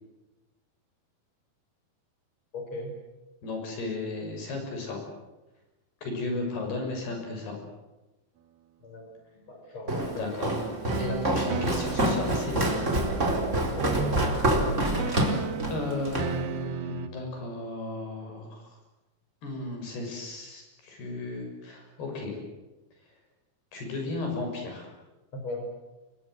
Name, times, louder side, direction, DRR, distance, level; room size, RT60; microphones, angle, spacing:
voice 1, 2.5-2.9 8.8-9.1 9.5-10.3 13.8-14.1 25.3-25.7, left 1 dB, 30° left, 4 dB, 6.2 m, -37 dB
voice 2, 3.4-5.0 6.0-7.6 10.1-10.6 11.0-12.8 15.7-18.7 19.4-22.4 23.7-24.9, left 2 dB, 75° left, 3 dB, 8.5 m, -34 dB
Walk footsteps, 9.9-16.3, right 1 dB, 20° right, 4.1 m, -27 dB
sound 1, 10.6-17.1, right 7 dB, 80° right, 3.4 m, -35 dB
29.0 x 23.0 x 8.0 m, 1.1 s
omnidirectional pair, 4.6 m